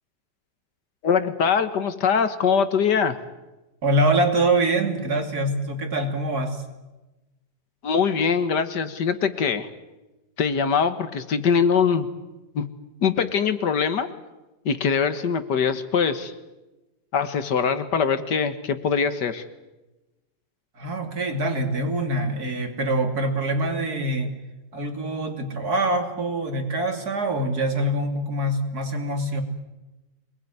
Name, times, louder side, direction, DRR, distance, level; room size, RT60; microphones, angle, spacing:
voice 1, 1.0-3.2 7.8-9.7 10.4-12.1 12.6-12.7 13.0-14.1 14.7-16.3 17.1-19.4, left 6 dB, 75° left, 10 dB, 2.0 m, -22 dB
voice 2, 3.8-6.6 20.8-24.3 24.7-29.4, right 1 dB, 60° right, 5 dB, 3.3 m, -24 dB
25.5 x 20.5 x 9.5 m, 1.1 s
omnidirectional pair, 1.8 m